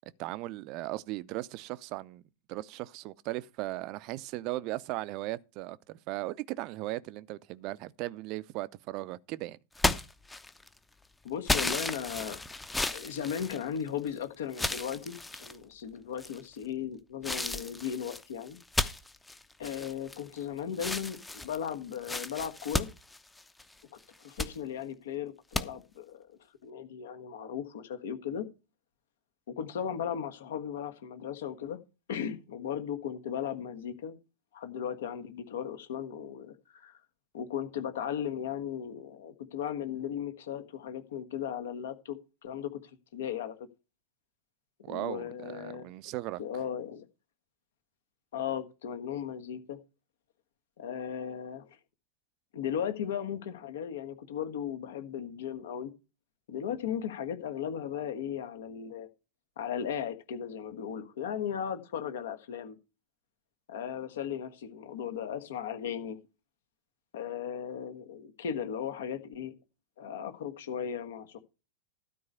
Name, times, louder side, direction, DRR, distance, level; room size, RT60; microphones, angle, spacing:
voice 1, 0.2-2.2 2.5-9.6 44.8-46.4, right 17 dB, 40° right, 0.6 m, -37 dB
sound 1, 9.8-10.8 11.5-14.1 14.5-15.6 16.2-16.6 17.2-20.4 20.7-23.7 24.1-24.5 25.5-25.7, left 2 dB, 10° left, 0.8 m, -33 dB
voice 2, 11.2-12.4 12.9-18.6 19.6-22.9 24.2-26.3 26.6-28.4 29.6-31.8 32.1-34.2 34.5-37.0 37.3-42.8 43.1-43.6 44.9-45.9 46.4-47.0 48.3-49.8 50.8-51.7 52.5-55.9 56.5-59.1 59.6-62.8 63.7-66.2 67.1-69.5 70.0-71.4, left 8 dB, 60° left, 1.4 m, -36 dB
12.5 x 4.6 x 6.6 m
figure-of-eight pair, 90°, 0 cm